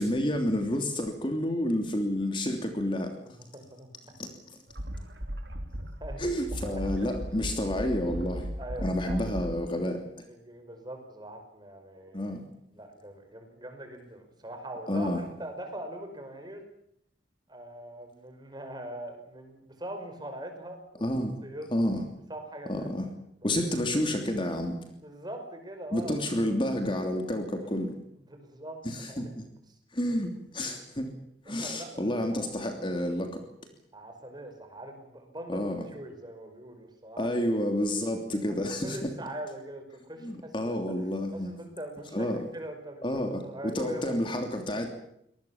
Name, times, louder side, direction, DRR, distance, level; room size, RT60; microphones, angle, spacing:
voice 1, 0.0-3.1 4.2-4.3 6.2-8.5 8.8-10.3 12.1-12.4 14.9-15.2 21.0-21.3 21.7-22.0 22.7-23.1 23.4-24.8 25.9-27.9 28.8-29.4 29.9-31.1 31.5-33.4 35.5-35.8 37.2-39.0 40.2-41.5 42.1-42.4 43.0-44.9, left 1 dB, 25° left, 5 dB, 3.0 m, -29 dB
voice 2, 3.5-4.3 6.0-6.3 6.6-7.1 8.6-9.4 10.3-12.3 12.7-16.6 17.5-21.1 21.4-21.7 22.3-22.9 23.4-23.5 25.0-26.6 27.6-27.7 28.3-28.8 29.1-29.3 29.7-29.8 31.5-32.5 33.9-37.3 38.5-41.0 41.3-44.4, right 1 dB, 20° right, 6 dB, 5.3 m, -42 dB
sound 1, 4.7-9.5, equal, 70° right, 3.4 m, -37 dB
24.5 x 19.5 x 7.3 m, 0.73 s
head